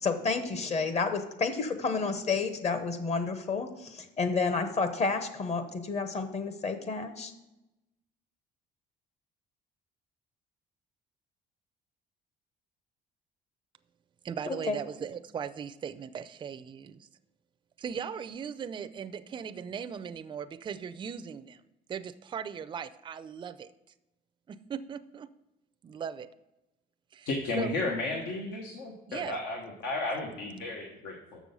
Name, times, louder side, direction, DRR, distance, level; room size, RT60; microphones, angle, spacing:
voice 1, 0.0-7.3 14.5-14.8, left 4 dB, 40° left, 9 dB, 1.0 m, -30 dB
voice 2, 14.2-17.1 17.8-21.6 21.9-23.7 24.5-25.3 25.8-26.3 27.1-27.3 27.6-27.7 29.1-29.4, right 7 dB, 30° right, 11 dB, 0.4 m, -38 dB
voice 3, 27.3-28.7 29.1-31.4, left 2 dB, 85° left, 1 dB, 1.2 m, -33 dB
6.9 x 6.2 x 5.3 m, 0.93 s
cardioid pair, 110°, 17 cm